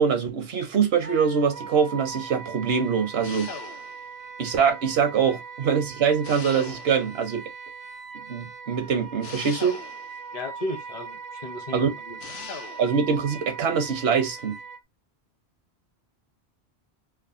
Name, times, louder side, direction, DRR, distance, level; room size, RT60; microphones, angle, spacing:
voice 1, 0.0-3.5 4.4-7.4 8.3-9.8 11.7-11.9 12.8-14.6, right 6 dB, 75° right, 0.9 m, -23 dB
Wind instrument woodwind instrument, 1.0-14.8, right 5 dB, 45° right, 0.5 m, -40 dB
sound 1, 3.2-4.1 6.2-7.2 9.2-10.2 12.2-13.0, left 5 dB, 75° left, 0.9 m, -40 dB
voice 2, 10.3-12.2, left 1 dB, 40° left, 0.7 m, -35 dB
3.4 x 2.1 x 2.4 m
omnidirectional pair, 1.1 m